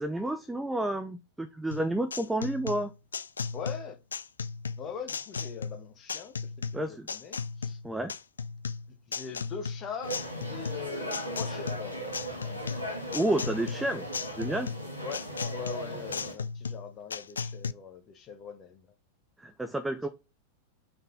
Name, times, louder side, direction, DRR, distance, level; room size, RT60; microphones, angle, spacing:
voice 1, 0.0-2.9 6.7-7.1 7.8-8.1 13.1-14.0 14.3-14.7 19.4-20.1, right 1 dB, 5° right, 0.7 m, -30 dB
sound 1, 1.7-17.7, left 5 dB, 70° left, 0.4 m, -36 dB
voice 2, 3.5-4.0 4.8-7.8 9.1-10.2 10.5-12.0 15.0-18.9, left 6 dB, 30° left, 1.2 m, -42 dB
sound 2, 10.0-16.3, equal, 90° right, 1.9 m, -38 dB
5.7 x 5.7 x 3.6 m
figure-of-eight pair, 90°, 0 cm